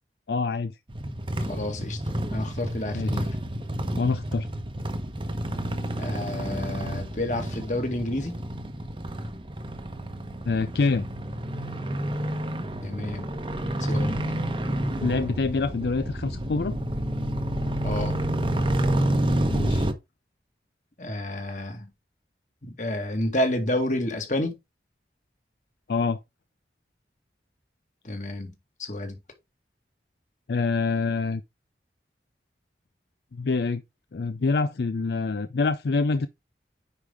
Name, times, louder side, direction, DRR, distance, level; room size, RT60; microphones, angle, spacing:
voice 1, 0.3-0.8 2.9-3.2 4.0-4.5 10.5-11.1 15.0-16.8 19.5-19.9 25.9-26.2 30.5-31.4 33.3-33.8 34.1-36.3, left 4 dB, 70° left, 0.5 m, -26 dB
sound 1, 0.9-19.9, right 1 dB, 30° right, 0.9 m, -29 dB
voice 2, 1.5-3.3 6.0-8.3 12.8-13.3 13.8-14.2 17.8-18.2 21.0-21.9 22.6-24.5 28.0-28.5 28.8-29.2, left 1 dB, 45° left, 2.0 m, -30 dB
9.6 x 5.1 x 3.7 m
head